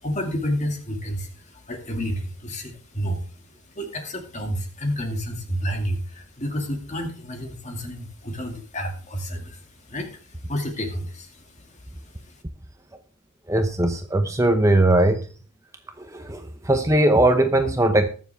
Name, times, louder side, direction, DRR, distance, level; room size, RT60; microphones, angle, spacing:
voice 1, 0.0-3.3 3.7-12.4, equal, 35° left, 4 dB, 2.3 m, -30 dB
voice 2, 13.5-15.3 16.0-18.1, right 1 dB, 15° right, 7 dB, 0.8 m, -20 dB
20.0 x 7.3 x 3.5 m, 0.38 s
head